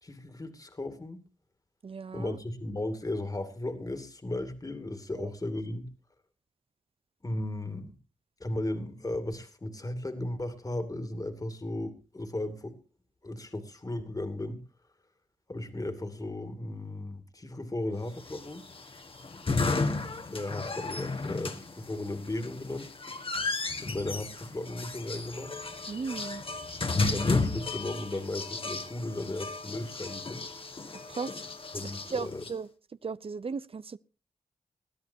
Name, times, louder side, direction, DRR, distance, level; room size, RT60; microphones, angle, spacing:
voice 1, 0.0-1.2 2.1-5.9 7.2-7.9 8.4-12.8 13.2-14.6 15.5-18.6 20.3-22.9 23.8-25.5 27.1-30.4 31.7-32.4, left 1 dB, 30° left, 2.3 m, -35 dB
voice 2, 1.8-2.4 5.1-5.3 25.9-26.4 31.1-31.3 32.1-32.7 33.0-34.0, right 5 dB, 45° right, 0.6 m, -36 dB
sound 1, 18.2-32.5, left 3 dB, 45° left, 1.7 m, -33 dB
20.5 x 13.0 x 2.8 m
cardioid pair, 55°, 13 cm